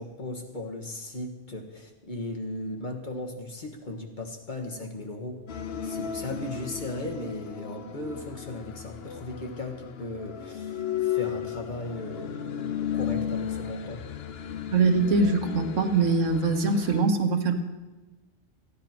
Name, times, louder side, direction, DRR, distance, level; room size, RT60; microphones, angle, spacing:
voice 1, 0.0-5.4 5.8-14.0, left 2 dB, 40° left, 2 dB, 1.6 m, -37 dB
sound 1, 5.5-17.0, left 9 dB, 60° left, 0.9 m, -34 dB
voice 2, 14.7-17.5, right 3 dB, 85° right, 6 dB, 1.5 m, -23 dB
14.5 x 10.5 x 5.9 m, 1.2 s
omnidirectional pair, 1.3 m